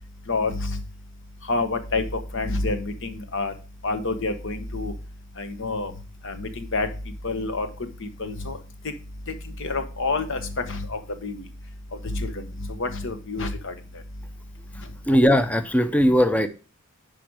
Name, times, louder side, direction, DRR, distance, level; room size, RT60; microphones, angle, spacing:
voice 1, 0.3-0.8 1.5-2.0 2.3-3.5 3.8-4.9 5.4-5.9 6.2-6.9 7.2-7.7 8.0-8.6 9.6-11.4 12.0-13.7, left 3 dB, 60° left, 8 dB, 1.2 m, -28 dB
voice 2, 15.1-16.5, equal, 5° left, 10 dB, 0.6 m, -19 dB
10.5 x 5.0 x 4.8 m, 0.34 s
head